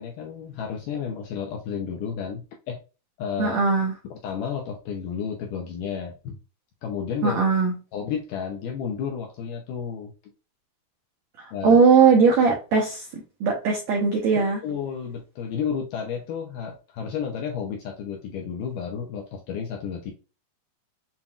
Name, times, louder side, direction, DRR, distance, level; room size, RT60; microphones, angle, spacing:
voice 1, 0.0-2.8 3.2-3.6 4.2-6.4 6.8-7.4 7.9-10.1 11.5-11.8 14.6-20.1, left 7 dB, 75° left, 1 dB, 2.0 m, -32 dB
voice 2, 3.4-3.9 7.2-7.7 11.6-13.0 13.4-14.6, right 5 dB, 85° right, -1 dB, 1.6 m, -19 dB
7.3 x 2.7 x 2.4 m, 0.31 s
omnidirectional pair, 4.5 m